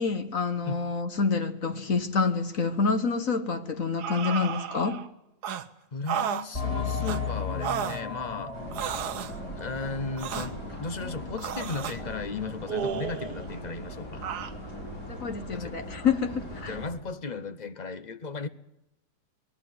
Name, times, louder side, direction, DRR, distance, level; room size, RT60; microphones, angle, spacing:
voice 1, 0.0-5.0 15.1-16.7, left 5 dB, 55° left, 1.5 m, -27 dB
sound 1, 4.0-5.1 5.4-5.7 6.1-6.5 7.0-7.2 7.6-8.0 8.7-9.4 10.2-10.5 11.4-12.0 12.7-13.5 14.2-14.5, right 8 dB, 75° right, 1.5 m, -32 dB
voice 2, 5.9-8.6 9.5-14.3 15.5-15.7 16.6-18.5, left 4 dB, 40° left, 0.7 m, -35 dB
sound 2, 6.5-10.8 11.1-11.2 11.8-11.9, left 5 dB, 20° left, 2.0 m, -35 dB
sound 3, 8.5-16.9, left 1 dB, 90° left, 6.7 m, -40 dB
21.0 x 14.0 x 9.5 m
omnidirectional pair, 1.7 m